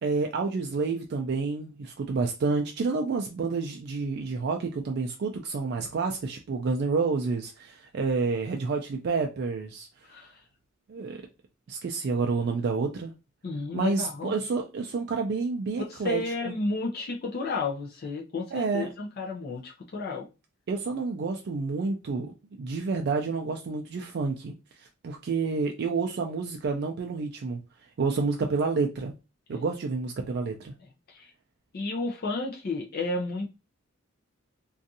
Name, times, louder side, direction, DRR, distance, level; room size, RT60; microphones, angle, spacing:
voice 1, 0.0-9.9 10.9-11.2 11.7-13.1 13.7-16.2 16.5-16.6 18.5-18.9 20.7-27.6 28.0-29.1 29.5-30.7, right 4 dB, 55° right, 0.4 m, -29 dB
voice 2, 10.1-10.4 13.4-14.3 15.8-20.3 29.5-29.6 31.1-31.3 31.7-33.5, left 3 dB, 50° left, 0.5 m, -32 dB
2.5 x 2.3 x 2.6 m
head